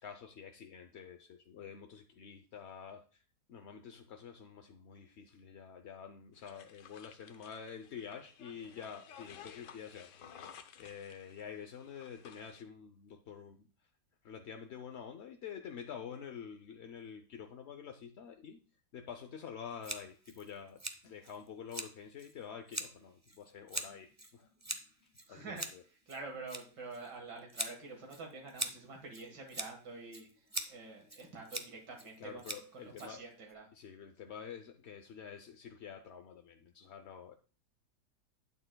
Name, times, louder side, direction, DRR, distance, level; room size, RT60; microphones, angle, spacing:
voice 1, 0.0-3.2 3.5-10.1 10.8-13.9 14.2-18.6 18.9-25.8 32.2-33.2 33.7-37.3, left 7 dB, 60° left, 5 dB, 0.7 m, -48 dB
sound 1, 6.3-12.6, left 8 dB, 90° left, 1.4 m, -55 dB
Scissors, 19.8-33.5, right 1 dB, 20° right, 0.4 m, -44 dB
voice 2, 25.3-25.7 26.1-33.7, right 3 dB, 85° right, 1 dB, 2.2 m, -47 dB
12.0 x 9.1 x 2.2 m, 0.37 s
omnidirectional pair, 1.8 m